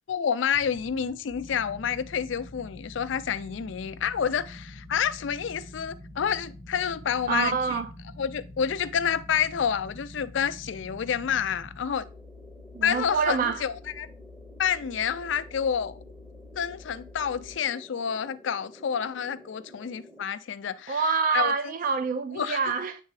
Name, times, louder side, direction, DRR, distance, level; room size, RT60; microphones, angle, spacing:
voice 1, 0.1-7.8 8.2-12.0 12.8-14.1 14.6-15.9 16.6-21.0 21.3-21.7 22.3-22.7, left 7 dB, 70° left, 0.4 m, -29 dB
sound 1, 0.5-20.2, right 1 dB, 5° right, 0.7 m, -49 dB
sound 2, 1.3-17.6, left 4 dB, 80° right, 1.1 m, -49 dB
voice 2, 7.3-7.9 12.7-13.6 20.9-23.0, right 5 dB, 45° right, 0.3 m, -26 dB
8.2 x 3.7 x 3.1 m
head